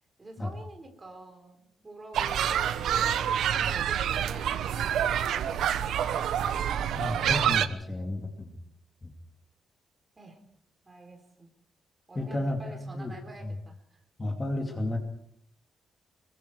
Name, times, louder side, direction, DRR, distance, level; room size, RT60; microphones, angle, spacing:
voice 1, 0.2-3.1 3.4-6.4 10.2-10.4 10.8-11.5 12.1-14.0, right 2 dB, 20° right, 4 dB, 4.1 m, -47 dB
sound 1, 2.1-7.7, right 9 dB, 80° right, 1.0 m, -27 dB
voice 2, 7.0-8.5 12.1-13.1 14.2-15.0, left 1 dB, 20° left, 3 dB, 2.5 m, -32 dB
25.5 x 23.0 x 4.9 m, 0.68 s
cardioid pair, 155°, 0 cm